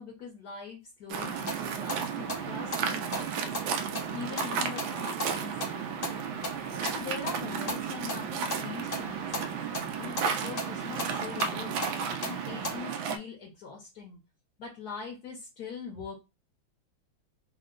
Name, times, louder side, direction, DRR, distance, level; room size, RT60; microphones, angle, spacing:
voice 1, 0.0-3.5 4.1-6.3 6.8-9.6 10.0-11.8 12.2-14.2 14.6-16.2, left 5 dB, 60° left, -1 dB, 1.3 m, -42 dB
Waves surf, 1.1-13.2, right 6 dB, 80° right, 1.3 m, -33 dB
sound 1, 1.2-12.8, equal, 80° left, 0.3 m, -39 dB
3.6 x 2.2 x 3.7 m, 0.26 s
omnidirectional pair, 2.1 m